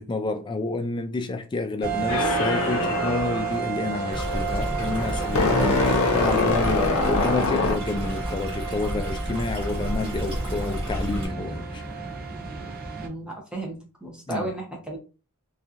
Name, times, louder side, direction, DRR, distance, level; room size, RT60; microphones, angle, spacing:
voice 1, 0.0-11.8 14.3-14.5, left 3 dB, 20° left, 0.3 m, -29 dB
sound 1, 1.8-13.1, right 6 dB, 40° right, 0.6 m, -32 dB
sound 2, 2.1-8.2, left 3 dB, 75° left, 0.6 m, -25 dB
Stream, 4.1-11.3, equal, 25° right, 1.3 m, -31 dB
voice 2, 13.0-15.0, right 2 dB, 5° right, 0.7 m, -34 dB
2.8 x 2.4 x 2.4 m
head